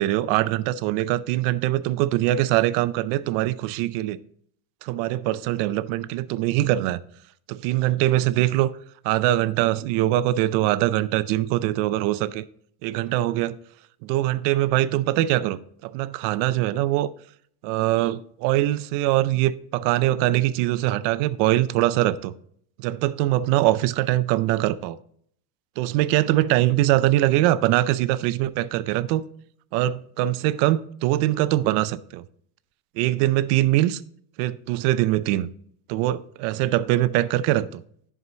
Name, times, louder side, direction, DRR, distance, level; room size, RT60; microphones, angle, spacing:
voice 1, 0.0-4.2 4.8-7.0 7.5-8.7 9.0-12.4 12.8-13.5 14.0-17.1 17.6-22.3 22.8-25.0 25.8-29.2 29.7-32.2 33.0-34.0 34.4-35.5 35.9-37.8, right 15 dB, 60° right, 0.6 m, -22 dB
11.0 x 4.9 x 3.9 m
supercardioid pair, 140°, 47 cm